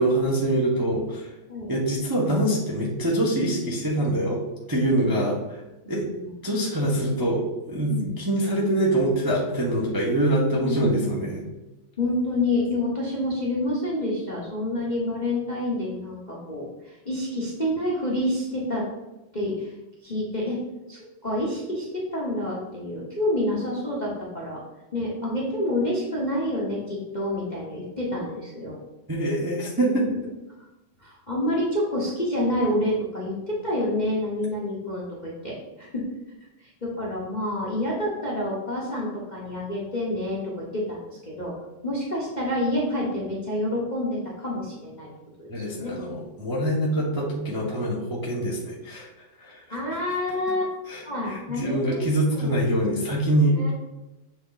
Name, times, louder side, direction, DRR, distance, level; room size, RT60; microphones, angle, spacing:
voice 1, 0.0-1.3 1.7-4.4 4.7-5.6 5.9-6.1 6.4-11.5 29.1-30.0 45.5-49.1 49.4-49.8 50.9-53.7, right 1 dB, 15° right, -5 dB, 0.7 m, -24 dB
voice 2, 5.8-6.3 7.9-8.1 10.6-11.2 12.0-18.8 19.3-19.7 20.0-20.6 20.9-21.9 22.1-24.6 24.9-28.8 30.0-30.2 30.6-30.7 31.0-36.0 36.6-41.5 41.8-45.1 45.4-45.9 49.7-50.7 51.0-52.0 52.3-52.6 53.6-53.7, left 1 dB, 30° left, -5 dB, 0.9 m, -28 dB
6.9 x 3.6 x 4.0 m, 1.0 s
omnidirectional pair, 2.3 m